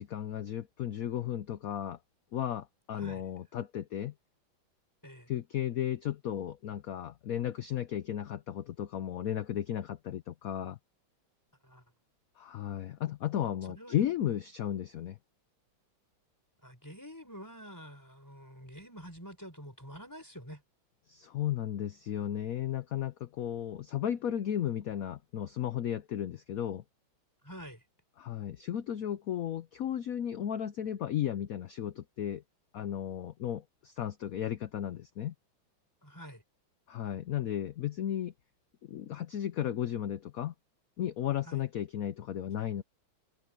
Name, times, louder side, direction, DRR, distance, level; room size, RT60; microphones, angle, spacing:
voice 1, 0.0-2.0 2.3-4.1 5.3-10.8 12.4-15.2 21.1-26.8 28.2-32.4 32.7-35.3 36.9-38.3 38.8-40.5 41.0-42.8, left 10 dB, 65° left, 0.9 m, -34 dB
voice 2, 2.9-3.3 5.0-5.3 11.6-11.8 13.7-14.0 16.6-20.6 27.4-27.8 36.0-36.4 41.4-41.6, equal, 10° left, 4.6 m, -47 dB
omnidirectional pair, 2.2 m